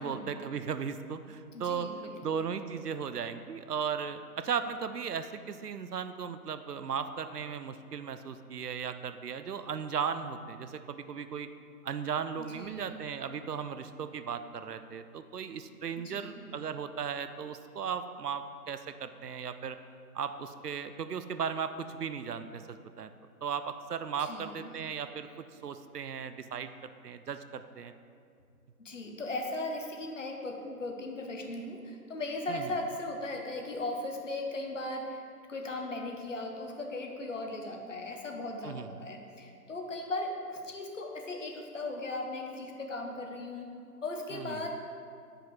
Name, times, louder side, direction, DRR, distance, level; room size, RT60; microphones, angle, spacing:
voice 1, 0.0-1.9 2.2-11.5 11.8-19.8 20.1-23.1 23.4-25.3 25.6-27.9 32.5-32.7 38.6-39.0 44.3-44.7, right 7 dB, 75° right, 10 dB, 0.5 m, -36 dB
voice 2, 1.5-2.4 12.4-13.1 16.0-16.4 24.2-24.8 28.8-35.2 35.5-43.7 44.0-44.7, left 2 dB, 50° left, 2 dB, 0.9 m, -38 dB
9.9 x 4.8 x 3.1 m, 2.4 s
figure-of-eight pair, 150°, 48 cm